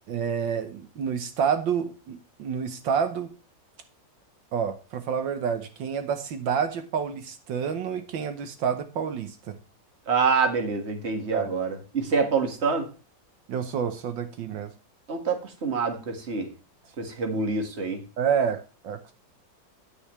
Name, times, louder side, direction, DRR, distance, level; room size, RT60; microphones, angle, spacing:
voice 1, 0.1-3.3 4.5-9.6 11.3-11.5 13.5-14.7 18.2-19.1, right 7 dB, 80° right, 8 dB, 1.7 m, -28 dB
voice 2, 10.1-12.9 15.1-16.5 17.0-18.0, right 5 dB, 35° right, 5 dB, 2.0 m, -26 dB
9.7 x 9.4 x 3.2 m, 0.33 s
omnidirectional pair, 2.0 m